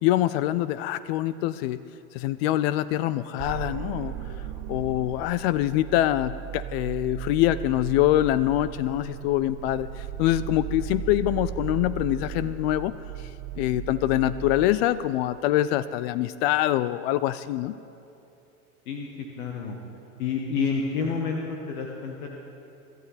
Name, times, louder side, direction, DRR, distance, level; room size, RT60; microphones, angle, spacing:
voice 1, 0.0-1.8 2.1-4.1 4.7-17.7, left 14 dB, 45° left, 16 dB, 0.5 m, -25 dB
sound 1, 3.4-14.7, right 11 dB, 45° right, 1.0 m, -36 dB
voice 2, 18.8-19.8 20.2-22.3, left 5 dB, 70° left, 1 dB, 1.6 m, -29 dB
24.5 x 12.0 x 4.1 m, 2.9 s
figure-of-eight pair, 80°, 45 cm